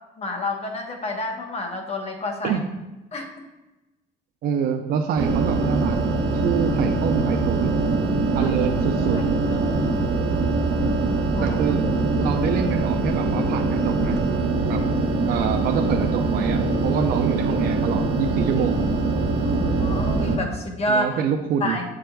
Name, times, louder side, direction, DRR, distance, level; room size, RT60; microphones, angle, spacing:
voice 1, 0.2-2.6 3.1-3.4 8.4-8.5 9.0-9.2 9.5-10.2 11.3-11.6 15.3-15.4 19.4-21.2 21.6-21.8, left 1 dB, 40° left, 3 dB, 1.1 m, -29 dB
voice 2, 4.4-6.0 6.3-7.7 8.3-9.2 11.4-11.8 12.1-14.2 14.6-14.8 15.2-18.8 20.9-21.8, right 7 dB, 65° right, 3 dB, 0.5 m, -26 dB
sound 1, 5.2-20.4, right 3 dB, 85° right, 1.0 m, -23 dB
7.5 x 5.9 x 2.3 m, 1.0 s
cardioid pair, 110°, 17 cm